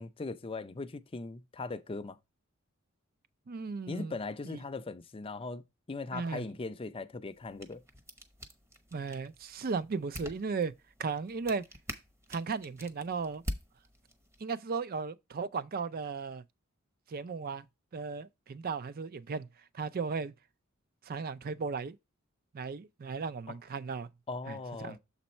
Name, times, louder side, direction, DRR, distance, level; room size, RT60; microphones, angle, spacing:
voice 1, 0.0-2.2 3.9-7.8 23.5-23.6 24.3-25.0, left 3 dB, 25° left, 0.5 m, -39 dB
voice 2, 3.5-4.2 4.5-4.6 6.1-6.4 8.9-10.7 11.0-11.6 12.3-13.4 14.4-16.4 17.1-17.6 17.9-19.5 19.7-20.3 21.1-22.0 22.5-24.1 24.5-25.0, right 5 dB, 45° right, 0.4 m, -36 dB
sound 1, 7.3-14.4, equal, 15° right, 0.9 m, -46 dB
7.0 x 4.1 x 4.3 m
head